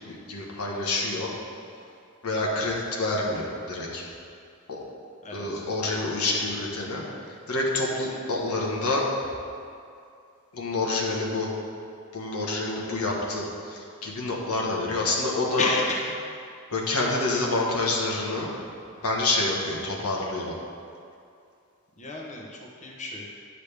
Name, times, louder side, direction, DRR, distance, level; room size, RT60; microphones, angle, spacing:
voice 1, 0.1-1.3 2.2-4.0 4.7-4.8 5.3-7.0 7.5-9.0 10.5-11.5 12.1-15.7 16.7-18.5 19.0-20.6, left 2 dB, 90° left, -2 dB, 1.4 m, -27 dB
voice 2, 5.2-5.6 15.6-16.4 22.0-23.3, left 2 dB, 35° left, -1 dB, 0.9 m, -32 dB
10.5 x 6.6 x 3.4 m, 2.4 s
head